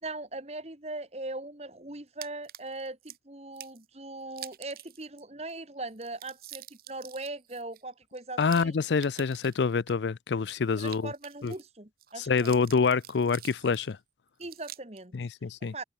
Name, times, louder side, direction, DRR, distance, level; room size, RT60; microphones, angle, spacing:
voice 1, 0.0-8.8 10.8-12.5 14.4-15.2 15.6-15.8, right 2 dB, 35° right, 2.0 m, -40 dB
sound 1, 2.2-3.2 3.6-3.8 4.3-5.2 5.5-5.6 5.9-9.9 10.4-11.7 12.0-13.9 14.4-15.0, right 13 dB, 55° right, 1.9 m, -47 dB
voice 2, 8.4-11.1 11.4-11.5 12.2-14.0 15.1-15.7, left 5 dB, 80° left, 0.5 m, -26 dB
head